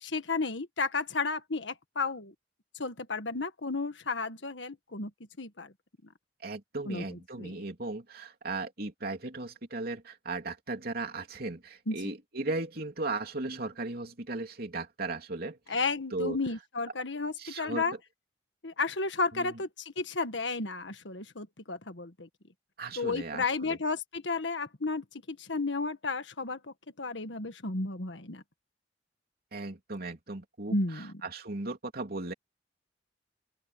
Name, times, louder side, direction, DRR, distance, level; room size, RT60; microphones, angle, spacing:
voice 1, 0.0-2.3 2.7-5.1 5.4-5.7 6.8-7.0 7.4-7.6 11.9-12.0 15.7-17.9 18.6-22.3 23.0-26.6 27.0-28.4 30.7-31.1, left 3 dB, 75° left, 1.6 m, -33 dB
voice 2, 6.4-15.6 16.1-16.4 17.4-18.0 19.3-19.6 22.8-23.8 29.5-32.3, right 2 dB, 55° right, 3.2 m, -37 dB
open air
head